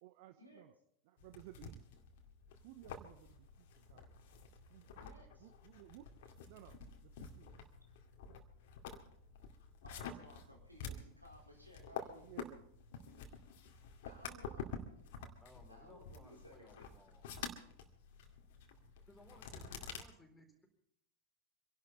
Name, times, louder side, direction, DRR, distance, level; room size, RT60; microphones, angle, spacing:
voice 1, 0.0-0.7 1.1-1.9 2.6-4.0 4.7-4.9 5.4-6.1 6.5-6.8 7.0-7.6 12.2-12.6, right 15 dB, 50° right, 10 dB, 0.9 m, -57 dB
sound 1, 1.2-20.0, left 5 dB, 50° left, 2.2 m, -50 dB
voice 2, 5.0-5.5 9.8-12.2 14.0-14.7 15.7-17.0, equal, 90° right, -2 dB, 4.7 m, -59 dB
voice 3, 15.4-17.2 19.1-20.7, left 1 dB, 5° left, 2 dB, 4.2 m, -62 dB
26.0 x 11.5 x 4.2 m, 0.72 s
figure-of-eight pair, 90°, 0 cm